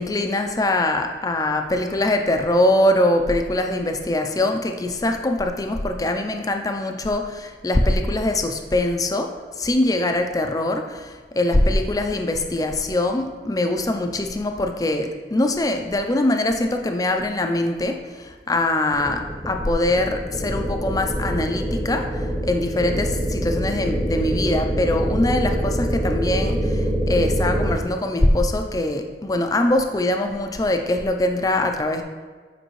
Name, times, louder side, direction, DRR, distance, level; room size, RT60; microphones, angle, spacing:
voice 1, 0.0-32.0, left 1 dB, 20° left, 5 dB, 0.4 m, -22 dB
sound 1, 18.9-27.8, equal, 5° right, 0.8 m, -25 dB
7.7 x 5.2 x 3.1 m, 1.5 s
head